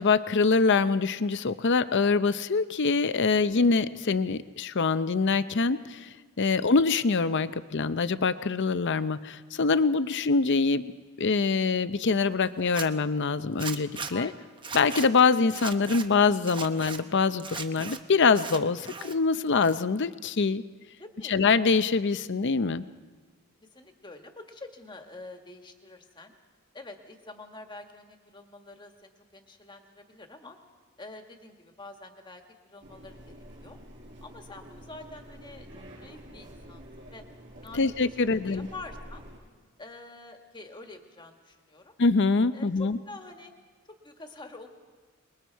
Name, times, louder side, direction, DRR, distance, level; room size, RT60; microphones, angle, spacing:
voice 1, 0.0-6.1 6.4-10.9 11.2-14.3 14.7-20.6 21.3-22.8 37.7-38.7 42.0-43.0, left 4 dB, 55° left, 13 dB, 0.6 m, -24 dB
Zipper (clothing), 12.6-12.9 13.6-14.1 14.6-15.1 15.5-16.0 16.4-17.0 17.4-18.0 18.3-19.1 19.5-20.1, right 5 dB, 20° right, 0.8 m, -37 dB
voice 2, 14.1-14.4 21.0-21.4 23.6-26.4 26.7-30.6 31.0-32.4 32.7-33.3 33.6-33.8 34.2-35.7 35.9-37.2 37.6-39.2 39.8-41.9 42.5-43.5 43.9-44.7, left 2 dB, 20° left, 4 dB, 1.6 m, -46 dB
sound 1, 32.8-39.4, equal, 55° right, 5.7 m, -48 dB
27.0 x 21.5 x 4.6 m, 1.4 s
head